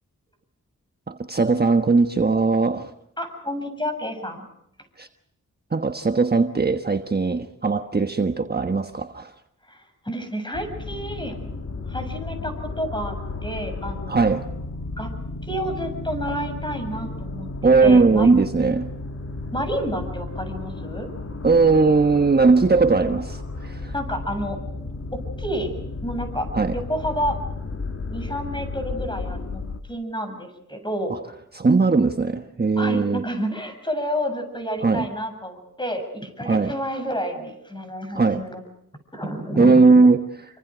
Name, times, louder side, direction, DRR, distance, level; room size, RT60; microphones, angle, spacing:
voice 1, 1.1-2.9 5.0-5.1 5.7-9.3 14.1-14.4 17.6-18.9 21.4-23.9 26.5-26.8 31.1-31.2 31.5-33.2 34.8-35.1 36.4-36.7 38.1-38.4 39.6-40.2, right 4 dB, 30° right, 7 dB, 1.2 m, -19 dB
voice 2, 3.2-4.5 9.6-11.3 11.9-13.1 13.4-14.2 15.0-15.1 15.4-17.5 17.8-18.3 19.5-21.1 23.9-24.6 25.4-25.7 26.0-26.5 26.7-27.4 28.1-29.6 29.9-31.1 32.8-38.6 39.1-40.1, equal, 15° left, 7 dB, 7.4 m, -29 dB
sound 1, 10.5-29.8, left 3 dB, 50° left, 2.5 m, -33 dB
28.0 x 25.0 x 5.1 m, 0.79 s
cardioid pair, 70°, 31 cm